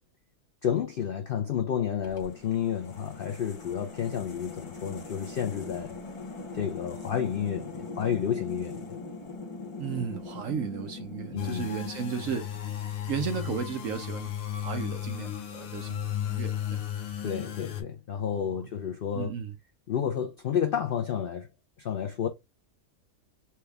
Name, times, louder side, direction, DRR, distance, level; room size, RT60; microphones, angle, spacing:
voice 1, 0.6-6.0 6.5-8.9 11.3-11.7 17.2-19.3 19.9-21.5 21.8-22.3, left 8 dB, 90° left, 0.4 m, -30 dB
sound 1, 2.0-13.1, left 3 dB, 30° left, 0.6 m, -42 dB
voice 2, 9.8-12.6 13.1-14.3 14.6-16.8 18.3-18.6 19.1-19.5, right 7 dB, 65° right, 1.0 m, -34 dB
sound 2, 11.4-17.8, left 10 dB, 70° left, 1.1 m, -34 dB
4.4 x 2.3 x 3.3 m
omnidirectional pair, 1.6 m